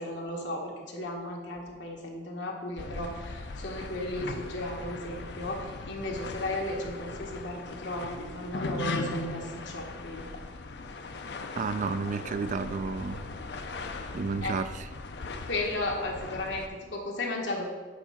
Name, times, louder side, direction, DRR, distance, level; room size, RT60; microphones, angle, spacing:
voice 1, 0.0-10.3 14.4-14.6 15.4-17.6, left 1 dB, 90° left, -1 dB, 1.4 m, -35 dB
sound 1, 2.8-16.7, left 3 dB, 70° left, 0.6 m, -39 dB
voice 2, 11.6-13.2 14.1-14.7, right 4 dB, 45° right, 12 dB, 0.3 m, -31 dB
8.4 x 3.6 x 5.7 m, 1.4 s
head